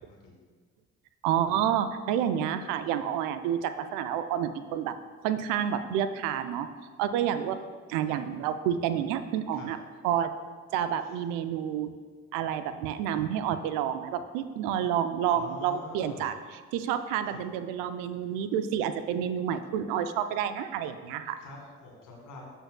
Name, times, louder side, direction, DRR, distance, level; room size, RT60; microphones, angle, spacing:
voice 1, 1.2-4.9 5.2-6.7 7.0-7.6 7.9-9.8 10.0-10.3 10.7-11.9 12.3-21.4, right 9 dB, 70° right, 11 dB, 0.5 m, -29 dB
voice 2, 15.3-16.3 21.4-22.5, left 2 dB, 65° left, -1 dB, 2.0 m, -46 dB
13.0 x 5.5 x 2.2 m, 1.5 s
hypercardioid pair, 45°, 33 cm